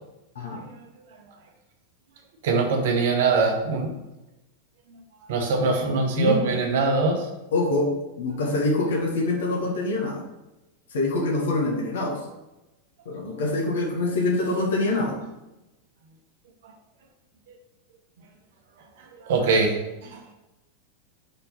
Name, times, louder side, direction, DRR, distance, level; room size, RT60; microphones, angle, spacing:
voice 1, 2.4-4.0 5.3-7.3 19.2-20.3, right 4 dB, 55° right, 2 dB, 1.0 m, -23 dB
voice 2, 7.5-7.9 8.2-10.2 10.9-12.2 13.0-15.2, left 2 dB, 60° left, -1 dB, 1.5 m, -25 dB
5.2 x 4.4 x 5.1 m, 0.98 s
figure-of-eight pair, 90°, 0 cm